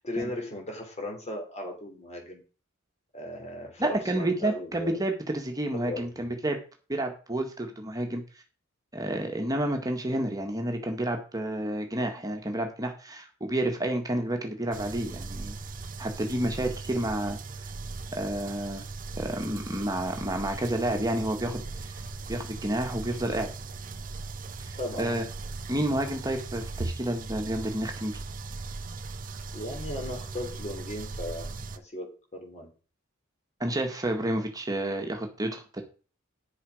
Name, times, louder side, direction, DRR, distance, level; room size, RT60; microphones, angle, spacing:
voice 1, 0.0-2.4 3.1-5.0 5.7-6.4 24.8-25.3 29.5-32.7, left 1 dB, 30° left, 2 dB, 3.4 m, -37 dB
voice 2, 3.8-6.6 6.9-8.2 8.9-15.6 16.0-17.4 17.6-17.7 18.1-18.8 19.2-22.0 22.3-23.5 24.6-24.7 25.0-25.3 25.7-28.2 33.6-35.8, right 1 dB, 15° right, 3 dB, 1.8 m, -30 dB
sound 1, 14.7-31.8, right 3 dB, 40° right, 0.8 m, -38 dB
10.0 x 7.2 x 5.0 m, 0.36 s
head